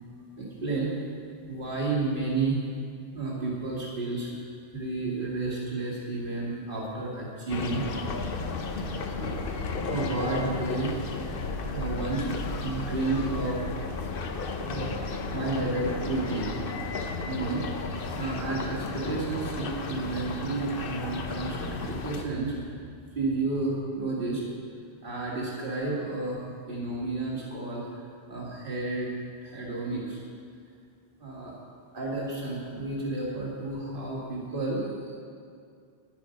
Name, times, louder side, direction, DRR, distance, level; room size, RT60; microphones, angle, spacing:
voice 1, 0.4-0.9 1.5-2.6 3.1-7.9 9.1-9.4 9.9-11.0 11.7-13.7 14.7-16.5 17.3-22.8 23.1-24.4 25.0-29.1 29.4-30.2 31.2-31.5 31.9-35.2, right 3 dB, 55° right, -5 dB, 2.3 m, -31 dB
sound 1, 7.5-22.2, left 3 dB, 60° left, 1.0 m, -33 dB
10.5 x 10.5 x 5.1 m, 2.3 s
omnidirectional pair, 1.1 m